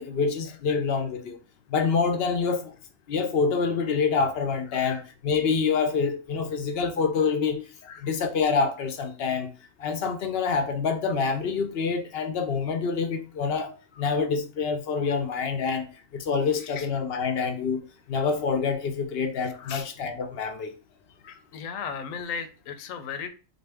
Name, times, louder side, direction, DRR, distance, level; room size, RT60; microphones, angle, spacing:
voice 1, 0.0-1.4 1.7-2.7 3.1-7.7 8.0-9.5 9.8-17.8 18.1-20.7 21.2-21.3, left 5 dB, 60° left, 0.7 m, -26 dB
voice 2, 21.3-23.3, left 6 dB, 80° left, 1.0 m, -36 dB
3.9 x 2.6 x 3.4 m
omnidirectional pair, 1.4 m